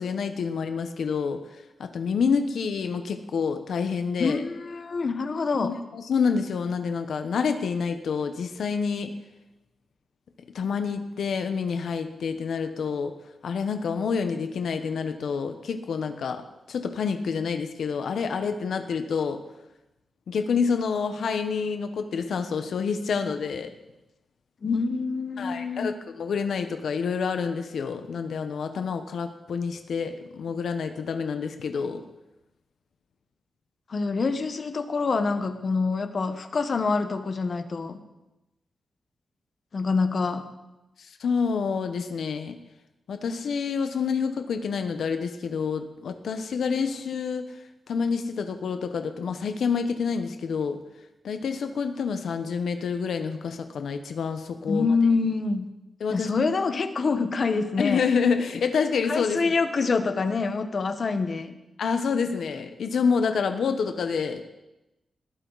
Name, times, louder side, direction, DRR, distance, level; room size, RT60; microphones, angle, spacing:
voice 1, 0.0-4.4 5.5-9.1 10.5-13.1 13.4-16.4 16.7-19.4 20.3-23.7 25.4-32.0 41.0-42.6 43.1-50.8 51.2-54.9 56.0-56.4 57.8-59.4 61.8-64.4, left 5 dB, 70° left, 7 dB, 1.0 m, -28 dB
voice 2, 4.2-5.7 24.6-25.9 33.9-38.0 39.7-40.4 54.7-55.7 56.1-58.0 59.1-61.5, left 4 dB, 40° left, 8 dB, 1.2 m, -26 dB
20.5 x 14.0 x 4.1 m, 0.98 s
wide cardioid pair, 175°, 0 cm